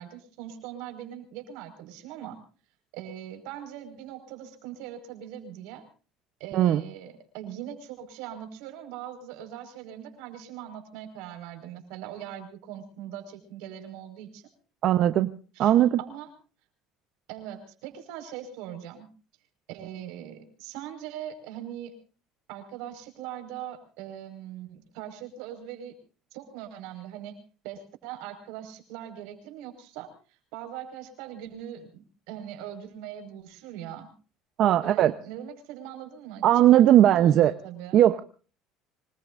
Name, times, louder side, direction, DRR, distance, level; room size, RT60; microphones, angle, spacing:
voice 1, 0.0-2.4 2.9-5.8 6.4-14.4 15.5-16.3 17.3-19.1 19.7-22.0 22.5-25.9 26.3-27.4 27.6-34.1 34.6-38.0, right 10 dB, 80° right, 6 dB, 5.1 m, -41 dB
voice 2, 14.8-15.3 15.6-16.0 34.6-35.1 36.4-37.5 37.9-38.2, right 12 dB, 50° right, 10 dB, 0.8 m, -18 dB
26.0 x 20.5 x 2.6 m, 0.38 s
cardioid pair, 140°, 0 cm